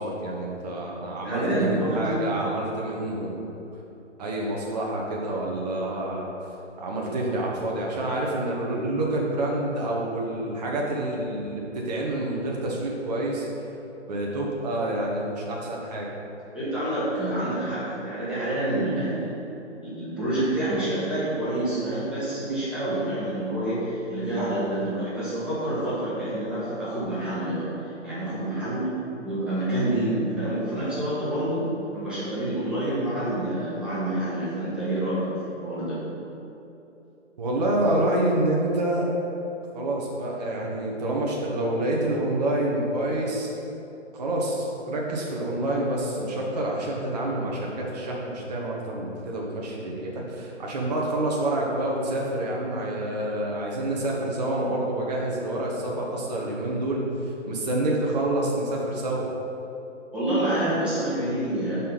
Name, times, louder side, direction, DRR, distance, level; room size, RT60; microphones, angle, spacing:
voice 1, 0.0-3.6 4.2-6.3 6.8-13.5 14.1-16.1 37.4-39.1 39.7-43.5 44.1-59.3, right 1 dB, 35° right, -3 dB, 0.8 m, -27 dB
voice 2, 1.2-2.2 16.5-19.4 19.8-28.9 29.2-36.0 60.1-61.8, right 1 dB, 5° right, -12 dB, 1.4 m, -27 dB
5.4 x 3.6 x 5.7 m, 2.9 s
figure-of-eight pair, 135°, 37 cm